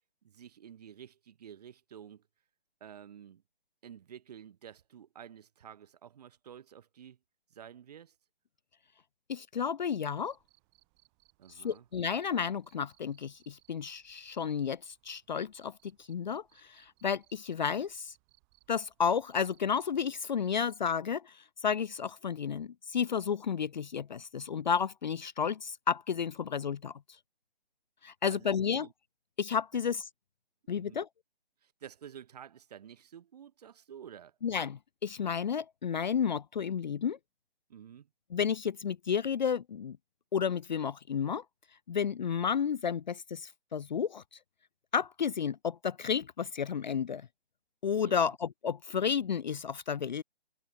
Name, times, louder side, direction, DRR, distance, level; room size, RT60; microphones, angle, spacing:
voice 1, 0.2-2.2 2.8-3.4 3.8-7.2 7.5-8.1 11.4-11.9 28.3-28.9 29.7-29.8 30.7-31.0 31.6-34.4 37.7-38.1 48.0-48.4, right 9 dB, 40° right, 2.3 m, -50 dB
voice 2, 9.3-10.4 11.6-15.7 16.1-16.4 16.7-18.1 18.7-21.3 21.6-26.9 28.0-28.9 29.4-30.0 30.7-31.1 34.4-37.2 38.3-40.0 40.3-41.4 41.9-44.2 44.9-47.3 47.8-50.2, left 7 dB, 50° left, 0.4 m, -32 dB
Cricket, 10.2-20.9, right 38 dB, 20° right, 6.9 m, -69 dB
figure-of-eight pair, 155°, 30 cm